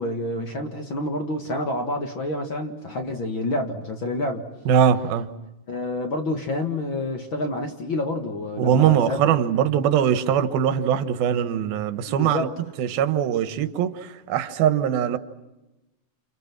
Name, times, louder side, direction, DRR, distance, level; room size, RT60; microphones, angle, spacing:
voice 1, 0.0-4.5 5.7-9.4 12.1-12.5, left 1 dB, 40° left, 4 dB, 2.1 m, -28 dB
voice 2, 4.7-5.3 8.6-12.5 12.8-15.2, right 9 dB, 90° right, 11 dB, 3.2 m, -21 dB
29.5 x 29.0 x 6.0 m, 1.0 s
omnidirectional pair, 4.1 m